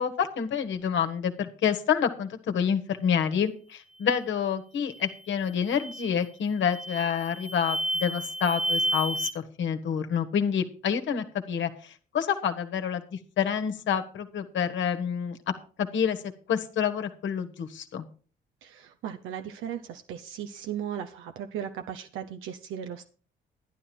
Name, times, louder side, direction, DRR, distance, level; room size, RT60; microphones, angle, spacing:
voice 1, 0.0-15.5 15.8-16.2 16.5-18.0, left 7 dB, 70° left, 7 dB, 1.5 m, -28 dB
sound 1, 4.9-5.2 5.7-6.2 6.7-9.3, right 1 dB, 5° right, 1.0 m, -31 dB
voice 2, 18.6-23.0, right 9 dB, 90° right, 6 dB, 0.8 m, -37 dB
11.5 x 10.0 x 4.4 m, 0.39 s
cardioid pair, 90°, 20 cm